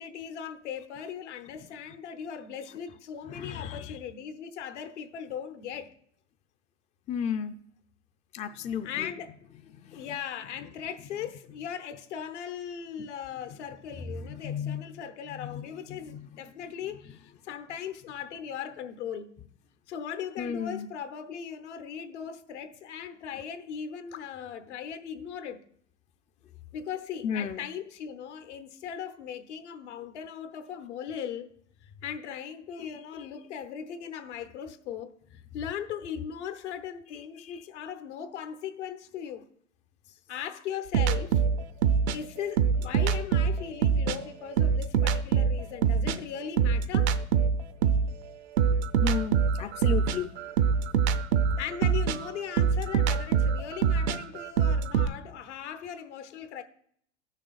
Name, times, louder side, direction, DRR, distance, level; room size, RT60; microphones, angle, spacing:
voice 1, 0.0-5.9 8.8-9.4 9.9-19.3 19.9-25.6 26.7-31.5 31.8-39.4 40.3-41.4 42.1-47.1 51.6-56.6, left 8 dB, 70° left, 1.0 m, -38 dB
voice 2, 3.3-4.0 7.1-7.5 8.3-9.1 9.7-10.1 13.0-13.1 13.5-13.6 13.9-14.9 15.3-16.5 20.4-20.9 27.2-27.7 32.8-33.3 37.1-37.6 48.6-50.4 50.7-50.8 51.1-51.3, left 7 dB, 20° left, 0.4 m, -35 dB
sound 1, 40.9-44.2 44.5-48.1 48.6-55.1, right 6 dB, 65° right, 0.7 m, -24 dB
16.5 x 6.4 x 2.4 m
hypercardioid pair, 90°, 36 cm